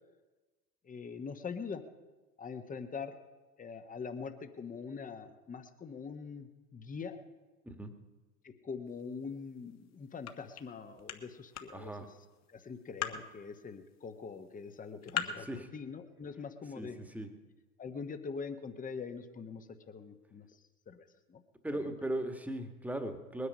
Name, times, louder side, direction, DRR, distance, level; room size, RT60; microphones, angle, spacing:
voice 1, 0.8-1.8 2.4-3.2 3.6-7.2 8.4-12.1 12.5-17.0 17.8-21.4 21.7-21.8, left 5 dB, 20° left, 8 dB, 1.2 m, -43 dB
sound 1, 8.9-15.4, left 9 dB, 35° left, 1.5 m, -44 dB
voice 2, 11.7-12.1 15.5-15.7 16.8-16.9 17.1-17.3 21.6-23.5, right 1 dB, 5° right, 7 dB, 1.6 m, -37 dB
21.5 x 9.7 x 5.4 m, 1.2 s
figure-of-eight pair, 75°, 45 cm